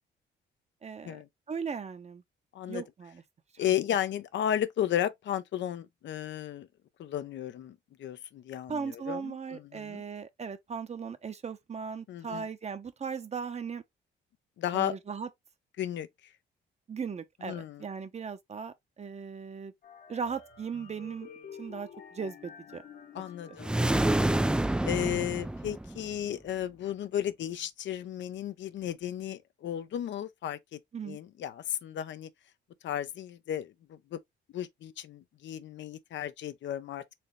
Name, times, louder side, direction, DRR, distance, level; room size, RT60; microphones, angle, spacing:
voice 1, 0.8-1.2 1.5-2.2 2.7-3.2 3.5-3.6 8.7-13.8 14.7-15.3 16.9-19.7 20.1-21.3 21.6-22.8 23.5-23.6 30.9-31.2, right 6 dB, 35° right, 0.8 m, -38 dB
voice 2, 3.6-6.7 7.0-10.0 12.1-12.5 14.6-14.9 15.8-16.1 17.4-17.8 23.1-23.7 24.8-32.3 32.8-34.2 34.5-37.0, left 10 dB, 65° left, 0.7 m, -34 dB
sound 1, 19.8-25.9, left 7 dB, 50° left, 1.1 m, -51 dB
sound 2, 23.6-26.2, right 1 dB, 5° right, 0.3 m, -27 dB
4.3 x 3.2 x 3.1 m
cardioid pair, 90°, 20 cm